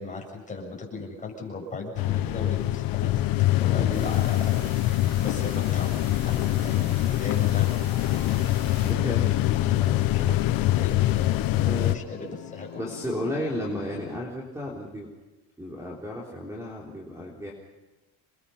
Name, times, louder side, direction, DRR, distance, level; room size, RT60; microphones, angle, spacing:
voice 1, 0.0-3.2 3.5-4.6 4.9-7.7 8.1-8.4 8.8-12.8, left 3 dB, 15° left, 0 dB, 7.4 m, -37 dB
sound 1, 2.0-12.0, left 15 dB, 50° left, 0.9 m, -24 dB
sound 2, 2.4-14.2, left 14 dB, 85° left, 1.7 m, -42 dB
voice 2, 3.8-4.2 8.9-9.5 11.6-12.0 12.8-15.1 15.6-17.5, left 1 dB, 5° right, -2 dB, 3.7 m, -33 dB
sound 3, 3.9-8.9, right 6 dB, 65° right, 6.5 m, -47 dB
28.5 x 22.5 x 5.8 m, 1.1 s
cardioid pair, 155°, 45 cm